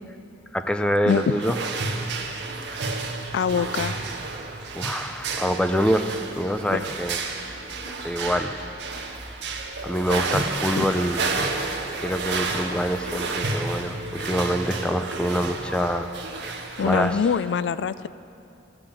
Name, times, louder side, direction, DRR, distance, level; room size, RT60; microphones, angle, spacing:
voice 1, 0.5-1.6 4.7-7.2 8.0-8.5 9.8-11.2 12.0-16.1 16.5-17.2, equal, 5° left, 8 dB, 0.5 m, -25 dB
sound 1, 1.1-17.2, right 3 dB, 75° right, 1.2 m, -31 dB
voice 2, 3.3-4.0 6.7-6.9 10.8-10.9 16.8-18.1, left 6 dB, 80° left, 16 dB, 0.3 m, -24 dB
13.5 x 7.9 x 8.7 m, 2.7 s
head